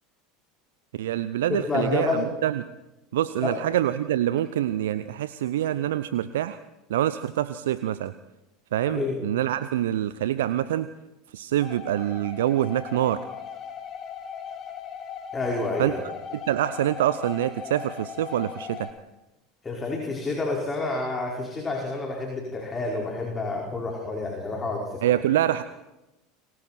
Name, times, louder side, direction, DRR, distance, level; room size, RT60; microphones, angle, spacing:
voice 1, 0.9-2.7 3.1-6.6 6.9-8.1 8.7-10.9 11.3-13.2 15.8-15.9 16.5-18.9 25.0-25.6, right 12 dB, 70° right, 14 dB, 0.7 m, -25 dB
voice 2, 1.5-2.2 3.4-3.6 8.9-9.2 15.3-16.0 19.6-25.2, left 3 dB, 20° left, -1 dB, 5.2 m, -29 dB
sound 1, 11.6-18.9, left 7 dB, 40° left, 3.1 m, -38 dB
30.0 x 22.5 x 4.5 m, 0.97 s
figure-of-eight pair, 75°, 0 cm